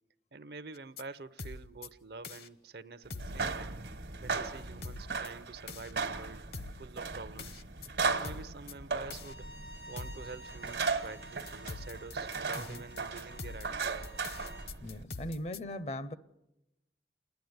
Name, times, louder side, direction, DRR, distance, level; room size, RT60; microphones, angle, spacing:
voice 1, 0.3-3.8 4.2-6.4 6.8-7.6 8.1-9.5 9.9-14.1, right 4 dB, 60° right, 0.7 m, -47 dB
sound 1, 0.7-1.0 1.4-1.9 2.2-2.5 3.1-3.4 4.8-5.3 5.7-5.9 6.5-6.8 7.4-7.9 8.2-8.7 9.1-9.3 10.0-10.3 11.5-15.6, left 3 dB, 60° left, 0.9 m, -44 dB
sound 2, 3.1-15.0, right 4 dB, 75° right, 1.3 m, -37 dB
Bowed string instrument, 9.1-14.7, equal, 80° left, 2.3 m, -52 dB
voice 2, 14.8-16.2, left 1 dB, 35° left, 0.6 m, -39 dB
28.5 x 10.5 x 9.5 m
head